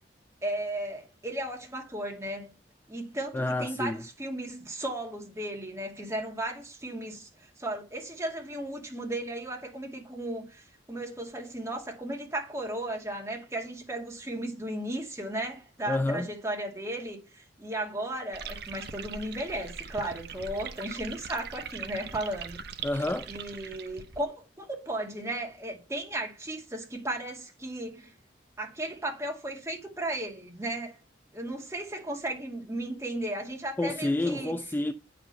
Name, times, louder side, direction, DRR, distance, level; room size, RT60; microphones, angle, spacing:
voice 1, 0.4-2.5 2.9-7.3 7.6-22.6 23.3-28.1 28.6-31.0 31.3-34.5, right 1 dB, 15° right, 2.3 m, -35 dB
voice 2, 3.3-4.0 15.9-16.3 22.8-23.3 33.8-34.9, left 2 dB, 10° left, 0.4 m, -29 dB
sound 1, 18.3-24.2, right 6 dB, 60° right, 0.9 m, -41 dB
8.9 x 5.0 x 6.9 m
head